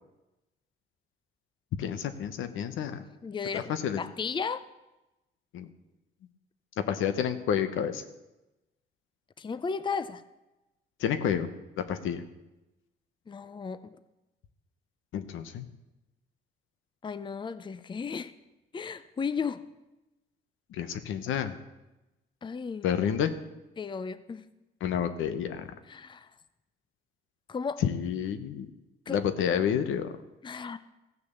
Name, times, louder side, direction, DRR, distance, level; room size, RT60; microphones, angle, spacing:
voice 1, 1.8-3.0 3.5-4.0 5.5-5.7 6.9-8.0 11.0-11.5 11.8-12.2 15.1-15.7 20.7-21.6 22.8-23.3 24.8-25.7 27.8-28.7 29.1-30.1, left 8 dB, 80° left, 10 dB, 1.0 m, -29 dB
voice 2, 3.2-4.6 9.4-10.2 13.3-14.0 17.0-18.3 18.7-19.7 22.4-22.9 23.8-24.5 25.9-26.3 27.5-27.8 29.1-29.2 30.4-30.8, left 5 dB, 25° left, 14 dB, 0.5 m, -34 dB
15.0 x 6.8 x 6.9 m, 1.0 s
cardioid pair, 90°, 20 cm